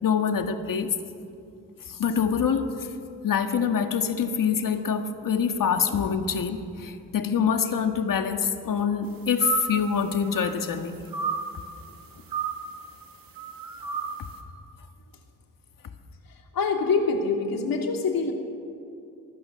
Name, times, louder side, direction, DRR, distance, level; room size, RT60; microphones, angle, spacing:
voice 1, 0.0-0.9 1.9-2.9 3.2-11.0, left 7 dB, 70° left, 6 dB, 1.8 m, -25 dB
sound 1, 9.4-9.9 10.2-10.7 11.1-11.5 12.3-12.8 13.4-14.2, right 7 dB, 80° right, 2.2 m, -31 dB
voice 2, 16.5-18.3, left 4 dB, 90° left, 2 dB, 3.2 m, -25 dB
24.0 x 19.5 x 6.9 m, 2.5 s
wide cardioid pair, 145°, 34 cm